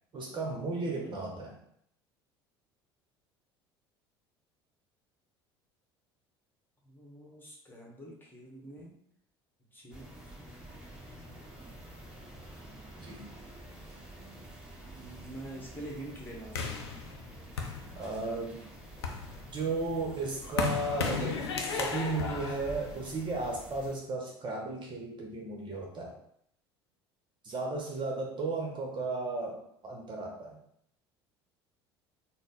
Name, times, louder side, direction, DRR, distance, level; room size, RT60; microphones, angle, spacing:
voice 1, 0.1-1.5 13.0-13.2 17.9-18.6 19.5-26.2 27.4-30.6, right 3 dB, 35° right, -1 dB, 0.8 m, -35 dB
voice 2, 0.8-1.2 6.8-9.0 9.7-11.2 11.6-12.0 14.8-16.9, right 1 dB, 15° left, -3 dB, 1.3 m, -47 dB
sound 1, 9.9-24.0, right 1 dB, 5° right, 1.2 m, -49 dB
sound 2, 16.5-18.4 18.8-23.5, left 5 dB, 80° left, 0.5 m, -35 dB
3.9 x 2.0 x 3.9 m, 0.68 s
figure-of-eight pair, 65°, 14 cm